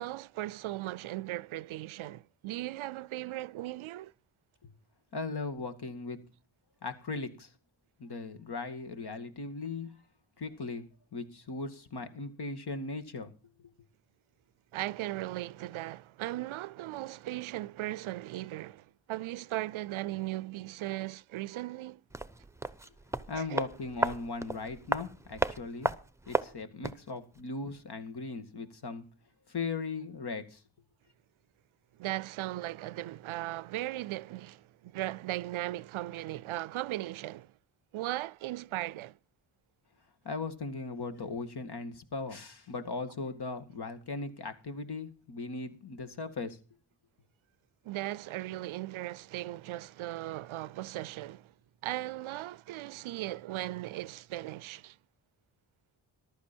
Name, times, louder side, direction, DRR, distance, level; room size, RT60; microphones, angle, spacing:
voice 1, 0.0-4.1 14.7-22.0 23.3-23.7 31.9-37.5 37.9-39.2 47.8-51.5 51.8-55.0, right 16 dB, 90° right, 0.6 m, -37 dB
voice 2, 5.1-6.2 6.8-7.5 8.0-9.9 10.4-10.9 11.1-13.3 23.3-25.9 26.3-29.0 29.5-30.6 40.2-46.6, left 3 dB, 55° left, 2.2 m, -38 dB
sound 1, 22.1-27.1 27.3-27.4, right 2 dB, 5° right, 0.9 m, -34 dB
14.5 x 12.0 x 4.5 m
cardioid pair, 75°, 47 cm